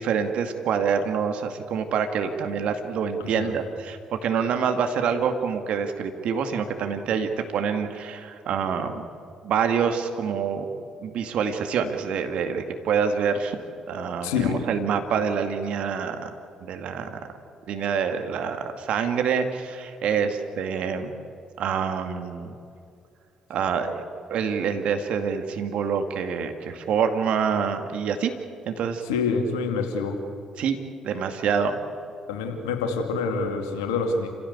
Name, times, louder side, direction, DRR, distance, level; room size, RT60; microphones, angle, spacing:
voice 1, 0.0-9.1 9.4-10.7 11.0-13.6 13.9-16.3 16.6-17.2 17.7-21.1 21.6-22.5 23.5-28.3 28.7-29.0 30.6-30.8 31.0-31.8, right 6 dB, 65° right, 6 dB, 2.2 m, -26 dB
voice 2, 3.2-3.6 14.2-14.6 29.0-30.2 32.3-34.3, left 5 dB, 80° left, 4 dB, 2.5 m, -26 dB
28.5 x 16.0 x 8.3 m, 2.4 s
hypercardioid pair, 45°, 2 cm